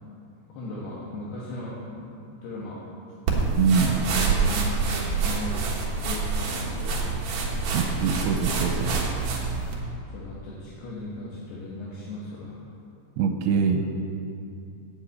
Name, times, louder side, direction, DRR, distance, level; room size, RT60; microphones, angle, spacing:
voice 1, 0.5-2.1 2.4-2.8 4.1-4.8 5.2-7.2 10.1-12.6, left 2 dB, 75° left, -7 dB, 3.5 m, -37 dB
sound 1, 3.3-9.8, right 4 dB, 60° right, 2.0 m, -26 dB
voice 2, 3.6-4.0 7.7-9.0 13.2-13.9, right 6 dB, 85° right, 5 dB, 2.7 m, -24 dB
8.8 x 8.2 x 8.4 m, 2.7 s
omnidirectional pair, 4.8 m